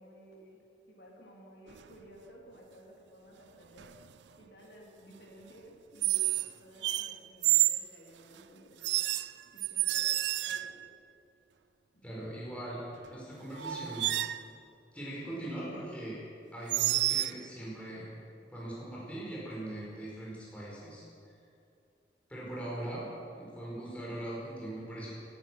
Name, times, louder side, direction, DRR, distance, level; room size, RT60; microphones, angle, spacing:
voice 1, 0.0-4.0 4.4-9.0 9.4-10.9 11.9-12.1, equal, 65° left, -2 dB, 3.4 m, -55 dB
sound 1, 1.7-2.0 3.8-4.1 6.0-6.5 6.8-7.9 8.8-10.9 13.1-13.2 13.6-14.5 16.7-17.4, right 15 dB, 75° right, 0.4 m, -29 dB
voice 2, 12.0-12.8 13.1-14.1 14.9-16.2 16.5-18.1 18.5-21.0 22.3-23.1 23.4-25.1, right 1 dB, 5° left, -6 dB, 4.6 m, -40 dB
17.5 x 12.0 x 6.2 m, 2.5 s
head